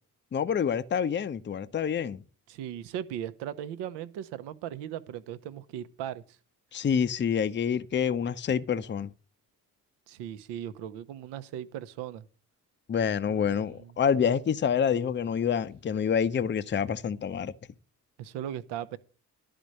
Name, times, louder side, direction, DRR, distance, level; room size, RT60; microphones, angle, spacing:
voice 1, 0.3-2.2 6.7-9.1 12.9-17.5, left 7 dB, 25° left, 0.7 m, -27 dB
voice 2, 2.5-6.2 10.1-12.2 13.3-13.9 18.2-19.0, right 10 dB, 60° right, 0.9 m, -38 dB
12.0 x 5.1 x 7.5 m
figure-of-eight pair, 40°, 47 cm